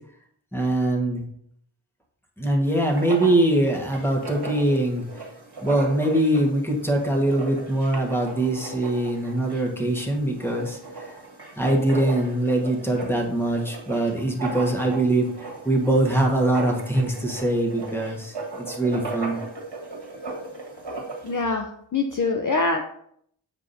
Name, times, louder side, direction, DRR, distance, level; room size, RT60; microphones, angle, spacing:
voice 1, 0.5-1.2 2.4-5.3 5.6-11.2 11.6-19.4, right 1 dB, 5° left, 0 dB, 1.4 m, -23 dB
Writing, 2.7-21.4, right 2 dB, 55° right, 1.6 m, -37 dB
voice 2, 21.2-22.8, left 3 dB, 40° left, 3 dB, 0.6 m, -24 dB
7.4 x 4.7 x 2.7 m, 0.67 s
wide cardioid pair, 45°, 47 cm